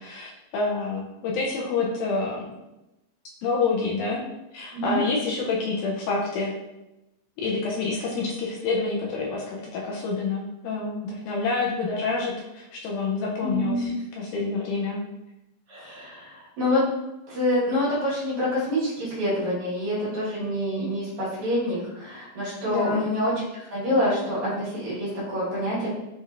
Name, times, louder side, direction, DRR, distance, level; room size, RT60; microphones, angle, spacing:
voice 1, 0.0-2.5 3.4-4.2 4.5-6.5 7.4-15.0 22.7-23.1, left 4 dB, 80° left, -2 dB, 1.9 m, -27 dB
voice 2, 13.4-14.0 15.7-16.8 17.3-25.9, left 1 dB, 65° right, -8 dB, 2.7 m, -26 dB
6.1 x 2.7 x 2.5 m, 0.96 s
omnidirectional pair, 3.8 m